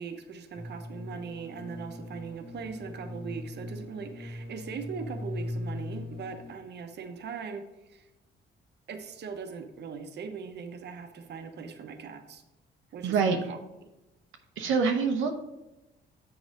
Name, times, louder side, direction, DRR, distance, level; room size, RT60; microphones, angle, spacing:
voice 1, 0.0-8.1 8.9-12.4 12.9-13.6, right 5 dB, 60° right, 6 dB, 0.9 m, -40 dB
sound 1, 0.5-6.5, left 1 dB, 65° left, 1.8 m, -40 dB
voice 2, 13.0-13.4 14.6-15.3, right 5 dB, 85° right, 3 dB, 0.8 m, -25 dB
7.3 x 4.8 x 5.2 m, 0.97 s
cardioid pair, 90°, 20 cm